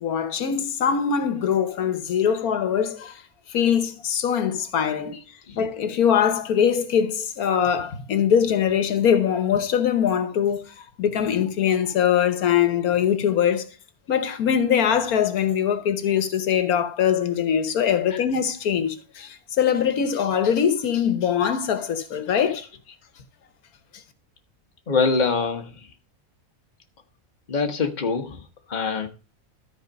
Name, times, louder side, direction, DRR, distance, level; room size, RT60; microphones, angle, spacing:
voice 1, 0.0-3.2 3.5-5.1 5.6-10.6 11.0-13.7 14.1-22.7, left 8 dB, 85° left, 1.5 m, -22 dB
voice 2, 5.1-5.7 18.1-18.3 24.9-25.9 27.5-29.1, left 4 dB, 35° left, 1.2 m, -25 dB
13.0 x 4.6 x 5.2 m
omnidirectional pair, 1.5 m